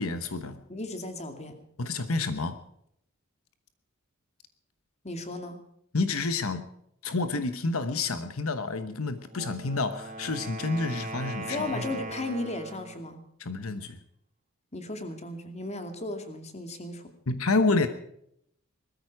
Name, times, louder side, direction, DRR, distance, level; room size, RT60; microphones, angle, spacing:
voice 1, 0.0-0.6 1.8-2.6 5.9-6.7 7.0-11.8 13.4-14.0 17.3-17.9, left 3 dB, 75° left, 10 dB, 1.2 m, -29 dB
voice 2, 0.7-1.6 5.0-5.6 11.4-13.2 14.7-17.1, left 2 dB, 30° left, 7 dB, 2.5 m, -35 dB
Wind instrument woodwind instrument, 9.2-13.0, right 2 dB, 35° right, 3.3 m, -39 dB
20.5 x 14.0 x 4.8 m, 0.72 s
head